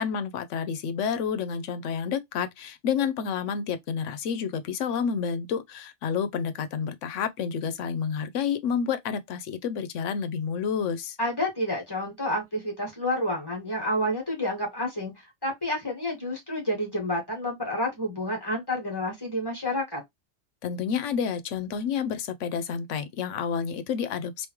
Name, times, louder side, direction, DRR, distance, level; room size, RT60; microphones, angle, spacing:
voice 1, 0.0-11.2 20.6-24.5, left 7 dB, 90° left, 1.0 m, -29 dB
voice 2, 11.2-20.0, left 1 dB, 20° left, 1.8 m, -29 dB
3.5 x 2.8 x 3.0 m
omnidirectional pair, 1.2 m